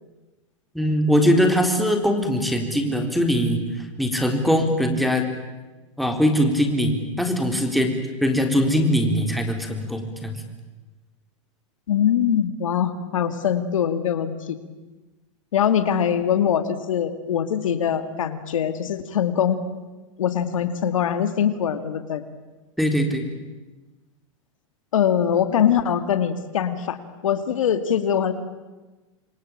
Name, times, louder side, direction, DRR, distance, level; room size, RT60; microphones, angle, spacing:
voice 1, 0.7-5.2 6.0-10.4 22.8-23.3, equal, ahead, 3 dB, 4.0 m, -21 dB
voice 2, 11.9-14.6 15.5-19.6 20.2-22.2 24.9-27.0 27.2-28.3, left 8 dB, 80° left, 11 dB, 2.2 m, -22 dB
28.0 x 22.5 x 8.8 m, 1.2 s
hypercardioid pair, 120°, 17 cm